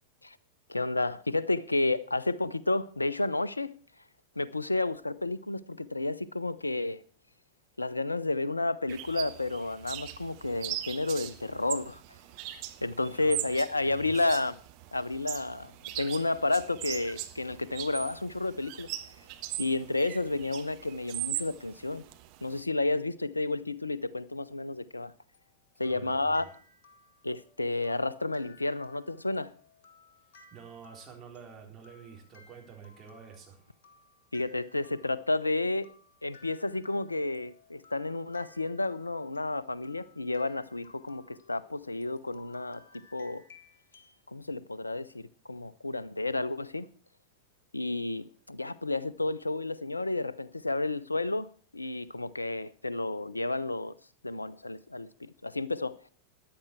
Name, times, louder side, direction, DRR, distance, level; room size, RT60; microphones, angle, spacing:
voice 1, 0.7-3.7 4.4-7.0 7.8-12.0 12.5-14.6 14.9-15.7 16.0-18.9 19.6-22.0 22.4-25.1 25.8-26.5 27.2-29.5 34.3-35.9 36.2-43.4 44.3-46.9 47.7-51.5 51.7-53.9 54.2-56.0, left 2 dB, 80° left, 0.6 m, -31 dB
sound 1, 8.9-22.6, right 15 dB, 45° right, 1.1 m, -40 dB
voice 2, 13.9-14.3 25.8-26.5 30.5-33.6, right 7 dB, 25° right, 4.1 m, -49 dB
sound 2, 25.3-44.2, left 4 dB, 55° left, 2.0 m, -60 dB
14.0 x 10.5 x 4.7 m
figure-of-eight pair, 90°, 0 cm